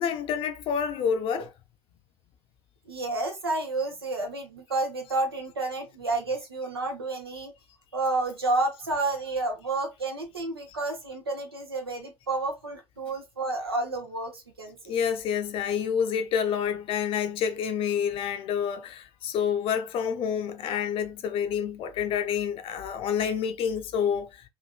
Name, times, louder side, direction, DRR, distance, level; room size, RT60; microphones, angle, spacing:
voice 1, 0.0-1.5 14.9-24.3, left 7 dB, 45° left, 0.6 m, -28 dB
voice 2, 2.9-7.5 7.9-15.0, right 2 dB, 85° right, 0.7 m, -30 dB
3.4 x 2.5 x 2.3 m
figure-of-eight pair, 65°, 13 cm